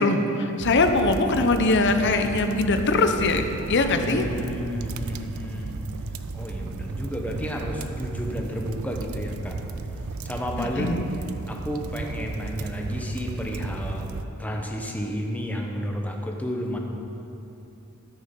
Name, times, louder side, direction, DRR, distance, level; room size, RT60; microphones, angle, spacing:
voice 1, 0.0-4.3 10.6-11.0, left 2 dB, 55° left, 6 dB, 0.8 m, -22 dB
sound 1, 0.6-14.3, right 3 dB, 85° right, 0.5 m, -34 dB
voice 2, 4.1-5.9 6.3-9.6 10.2-11.1 11.5-14.1 14.4-16.8, equal, 5° left, 0 dB, 1.0 m, -31 dB
13.0 x 6.6 x 5.4 m, 2.9 s
head